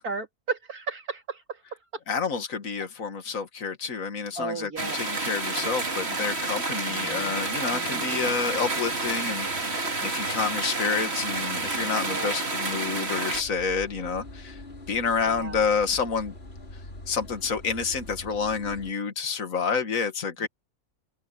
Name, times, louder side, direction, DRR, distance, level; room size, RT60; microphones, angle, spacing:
voice 1, 0.0-1.6 4.4-5.0 6.9-7.3 7.7-8.2 9.6-9.7 12.0-12.4 15.2-15.6 20.4-20.5, right 4 dB, 80° right, 3.2 m, -35 dB
voice 2, 2.1-14.6 14.9-16.3 17.1-20.5, left 5 dB, 60° left, 2.3 m, -29 dB
sound 1, 4.8-13.4, right 3 dB, 45° right, 2.9 m, -29 dB
sound 2, 13.3-18.9, left 1 dB, 40° left, 3.9 m, -44 dB
open air
omnidirectional pair, 1.6 m